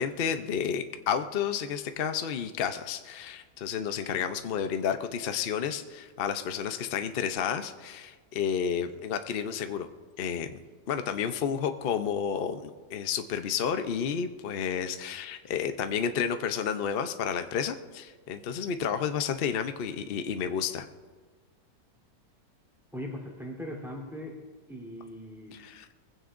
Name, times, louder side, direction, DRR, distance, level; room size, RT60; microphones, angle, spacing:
voice 1, 0.0-9.9 10.2-10.6 10.9-20.9 25.5-25.9, left 7 dB, 70° left, 8 dB, 0.5 m, -31 dB
voice 2, 22.9-24.4 24.7-25.6, equal, ahead, -3 dB, 3.1 m, -39 dB
21.5 x 15.5 x 2.6 m, 1.4 s
omnidirectional pair, 1.9 m